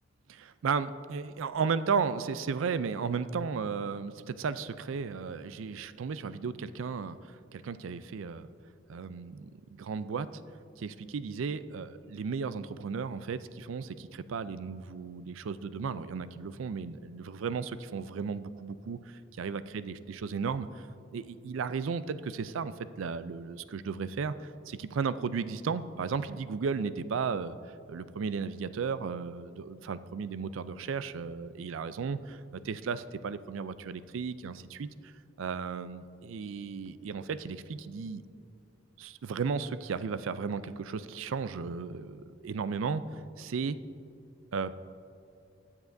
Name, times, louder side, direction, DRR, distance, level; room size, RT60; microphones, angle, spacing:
voice 1, 0.3-8.5 8.9-10.3 10.8-20.9 21.1-27.6 27.9-35.1 35.4-38.2 39.0-43.0 43.4-43.8 44.5-44.9, right 5 dB, 75° right, 14 dB, 0.4 m, -35 dB
21.0 x 7.3 x 2.6 m, 2.5 s
head